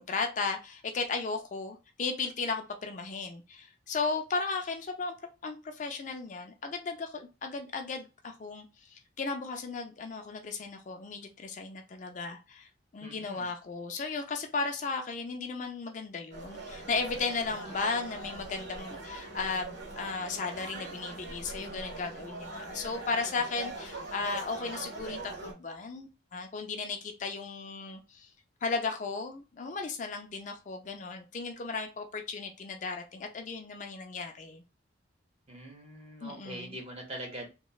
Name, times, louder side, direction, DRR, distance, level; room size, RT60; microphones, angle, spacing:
voice 1, 0.0-5.1 5.4-12.7 12.9-28.3 28.6-34.6 36.2-36.8, left 4 dB, 40° left, 4 dB, 0.4 m, -35 dB
voice 2, 13.0-13.5 17.5-17.7 35.5-37.5, right 1 dB, 35° right, 1 dB, 0.9 m, -43 dB
sound 1, 16.3-25.5, right 2 dB, 85° right, 1.1 m, -42 dB
3.0 x 2.0 x 2.3 m, 0.28 s
head